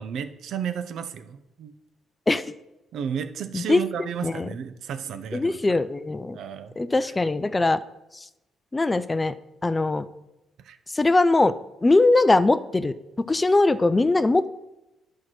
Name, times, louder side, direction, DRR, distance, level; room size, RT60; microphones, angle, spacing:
voice 1, 0.0-1.7 2.9-5.8 6.3-6.8 7.0-7.1 10.6-10.8, right 8 dB, 75° right, 10 dB, 0.7 m, -33 dB
voice 2, 5.3-6.4 6.8-7.8 8.1-8.2 8.7-9.3 9.6-10.0 10.9-11.5 11.8-12.9 13.3-14.5, left 2 dB, 20° left, 14 dB, 0.4 m, -21 dB
9.8 x 4.7 x 6.1 m, 0.95 s
cardioid pair, 90°, 0 cm